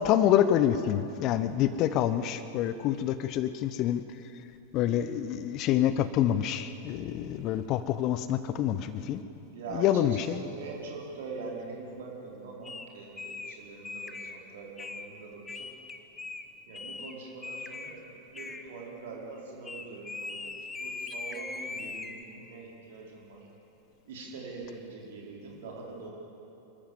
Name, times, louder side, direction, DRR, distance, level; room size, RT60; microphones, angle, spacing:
voice 1, 0.0-4.0 4.7-9.2 9.7-10.4, left 11 dB, 40° left, 13 dB, 0.8 m, -27 dB
voice 2, 9.5-15.7 16.7-23.5 24.1-26.1, right 4 dB, 55° right, -2 dB, 4.3 m, -43 dB
sound 1, 12.6-12.8 13.2-13.5 13.8-14.4 14.8-15.1 15.4-16.5 16.7-17.1 17.4-18.0 18.3-18.6 19.6-22.2, left 3 dB, 15° left, 1.1 m, -40 dB
27.5 x 13.0 x 7.4 m, 2.9 s
figure-of-eight pair, 90°, 0 cm